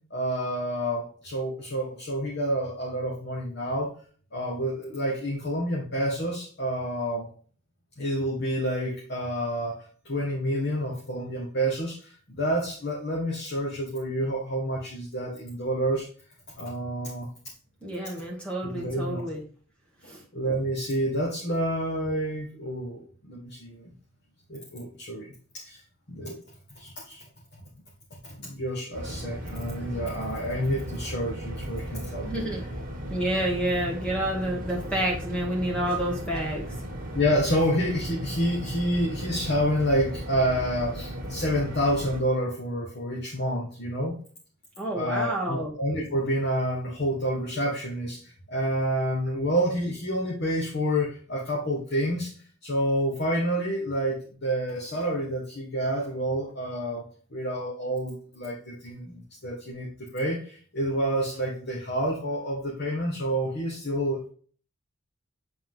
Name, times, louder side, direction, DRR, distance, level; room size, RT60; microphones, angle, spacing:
voice 1, 0.1-3.9 4.3-7.3 8.0-16.1 16.6-17.3 18.6-19.2 20.3-23.9 24.5-25.8 26.1-26.4 26.8-27.2 28.2-32.6 37.1-44.2 44.9-52.3 52.6-64.3, equal, 50° left, -3 dB, 1.6 m, -29 dB
voice 2, 17.8-19.4 20.1-20.2 32.2-32.6 33.1-36.7 44.8-45.7, right 1 dB, 5° left, -1 dB, 1.4 m, -29 dB
sound 1, 28.9-42.2, equal, 40° right, 2.0 m, -36 dB
7.7 x 4.3 x 3.7 m, 0.42 s
head